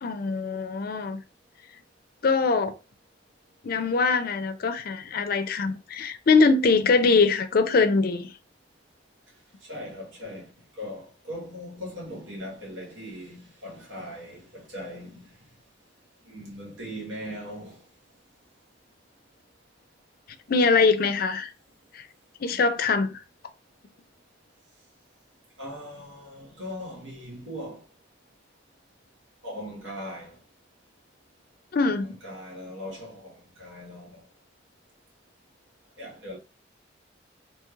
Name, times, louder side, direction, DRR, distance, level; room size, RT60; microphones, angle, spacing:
voice 1, 0.0-1.2 2.2-2.7 3.6-8.3 20.5-21.5 21.9-22.1 22.4-23.1 31.7-32.1, left 4 dB, 50° left, 0.4 m, -22 dB
voice 2, 9.7-10.5 10.8-15.2 16.3-17.8 25.6-27.8 29.4-30.4 31.9-34.2 36.0-36.4, equal, 80° right, 1.2 m, -39 dB
3.0 x 2.8 x 2.3 m
head